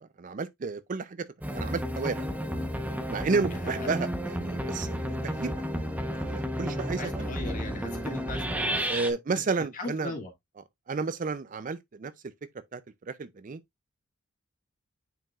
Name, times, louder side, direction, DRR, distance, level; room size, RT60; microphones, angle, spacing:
voice 1, 0.0-2.3 3.1-5.5 6.1-7.3 8.9-10.1 10.9-12.1 12.5-13.6, right 4 dB, 35° right, 0.4 m, -32 dB
sound 1, 1.4-9.1, equal, 5° right, 0.9 m, -32 dB
voice 2, 7.0-9.0 9.7-10.3, left 2 dB, 40° left, 2.1 m, -38 dB
9.1 x 4.6 x 2.4 m
head